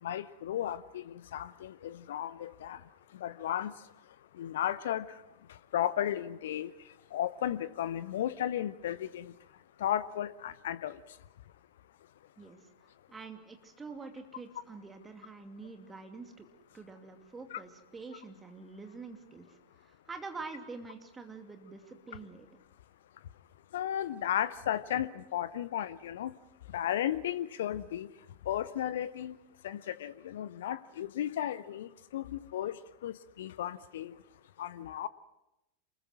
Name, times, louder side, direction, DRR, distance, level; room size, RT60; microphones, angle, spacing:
voice 1, 0.0-2.8 3.1-3.9 4.3-5.2 5.5-9.3 9.8-11.0 17.5-17.6 23.7-26.3 26.7-28.1 28.5-29.4 29.6-34.2 34.6-35.1, left 11 dB, 60° left, 17 dB, 0.7 m, -34 dB
voice 2, 13.1-16.5 16.7-22.5, right 4 dB, 15° right, 5 dB, 2.7 m, -46 dB
27.5 x 21.5 x 6.2 m, 0.92 s
figure-of-eight pair, 90°, 0 cm